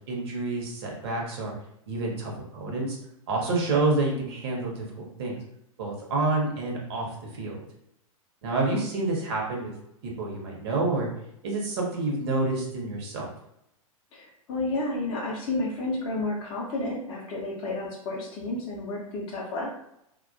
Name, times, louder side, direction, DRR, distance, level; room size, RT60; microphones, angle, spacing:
voice 1, 0.1-1.5 1.9-3.0 3.3-5.4 5.8-7.6 8.4-9.7 10.0-11.1 11.4-13.3, right 2 dB, 45° right, -1 dB, 0.7 m, -28 dB
voice 2, 14.1-19.7, left 2 dB, 25° left, -4 dB, 0.5 m, -31 dB
2.3 x 2.2 x 2.4 m, 0.78 s
figure-of-eight pair, 100°, 19 cm